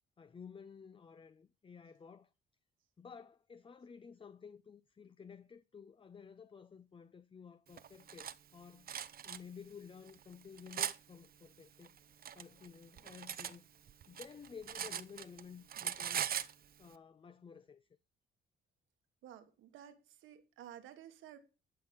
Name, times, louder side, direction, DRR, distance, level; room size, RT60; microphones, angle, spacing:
voice 1, 0.2-2.3 3.0-8.9 9.2-12.0 12.3-13.7 14.1-16.4 16.8-17.9, left 6 dB, 25° left, 0.6 m, -53 dB
Cutlery silverware, 7.8-8.3 8.9-9.4 10.1-11.0 11.8-13.6 13.9-15.4 15.7-16.5, right 9 dB, 50° right, 0.7 m, -40 dB
voice 2, 19.2-21.4, right 10 dB, 85° right, 1.6 m, -53 dB
14.5 x 5.5 x 7.0 m
cardioid pair, 90°, 20 cm